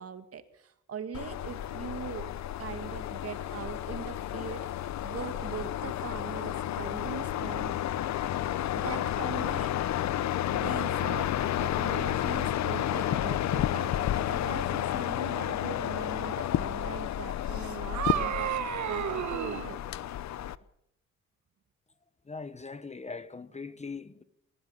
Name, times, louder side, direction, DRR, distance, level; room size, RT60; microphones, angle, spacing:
voice 1, 0.0-2.3 2.6-7.9 8.7-9.7 10.5-11.3 11.6-18.5 18.9-19.8, right 7 dB, 50° right, 2.0 m, -41 dB
sound 1, 1.1-20.6, left 12 dB, 65° left, 0.8 m, -31 dB
sound 2, 17.5-19.7, right 11 dB, 70° right, 1.5 m, -32 dB
voice 2, 22.3-24.2, left 4 dB, 20° left, 1.3 m, -41 dB
20.5 x 19.0 x 7.2 m
cardioid pair, 90°, 30 cm